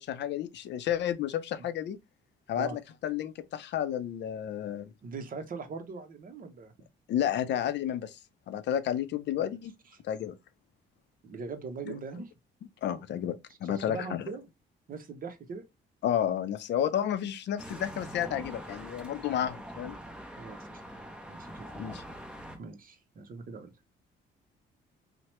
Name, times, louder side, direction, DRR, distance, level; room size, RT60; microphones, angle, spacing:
voice 1, 0.0-2.0 2.5-4.9 7.1-8.2 8.5-9.7 10.0-10.4 11.9-12.0 12.8-14.3 16.0-20.0 21.8-22.0, left 10 dB, 65° left, 0.5 m, -31 dB
voice 2, 5.0-6.7 9.4-9.6 11.2-12.3 13.6-14.4 14.9-15.6 20.4-20.8 21.3-21.7 22.5-23.7, right 4 dB, 45° right, 0.7 m, -41 dB
sound 1, 17.6-22.6, equal, 5° right, 0.7 m, -44 dB
2.8 x 2.1 x 2.9 m
cardioid pair, 90°, 20 cm